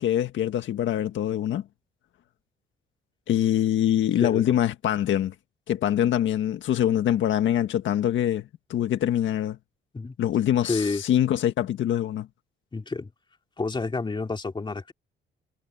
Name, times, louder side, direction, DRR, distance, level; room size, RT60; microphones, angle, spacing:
voice 1, 0.0-1.6 3.3-5.3 5.7-9.6 10.2-12.3, left 11 dB, 75° left, 1.7 m, -24 dB
voice 2, 10.7-11.0 12.7-13.1 13.6-14.9, left 3 dB, 25° left, 2.9 m, -29 dB
cardioid pair, 90°, 20 cm